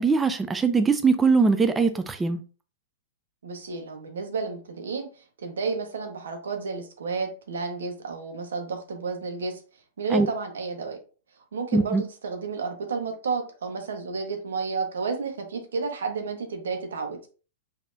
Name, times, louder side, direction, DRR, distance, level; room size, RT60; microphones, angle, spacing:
voice 1, 0.0-2.4 10.1-10.3 11.7-12.0, right 4 dB, 15° right, 0.3 m, -21 dB
voice 2, 3.4-9.6 10.0-11.0 11.5-17.2, right 4 dB, 80° right, 1.0 m, -31 dB
5.2 x 2.7 x 2.5 m
hypercardioid pair, 120°, 0 cm